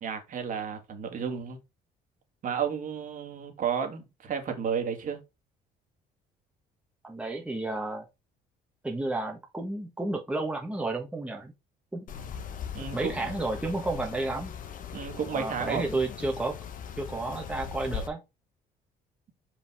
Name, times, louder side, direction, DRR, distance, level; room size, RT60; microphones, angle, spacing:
voice 1, 0.0-1.6 2.4-5.2 12.7-13.4 14.9-16.0, right 7 dB, 50° right, 2.0 m, -32 dB
voice 2, 7.0-8.0 8.8-11.5 11.9-12.1 12.9-14.5 15.3-16.5 17.0-18.2, right 2 dB, 5° right, 1.3 m, -31 dB
sound 1, 12.1-18.1, left 7 dB, 55° left, 1.1 m, -39 dB
5.2 x 5.1 x 3.5 m
cardioid pair, 110°, 17 cm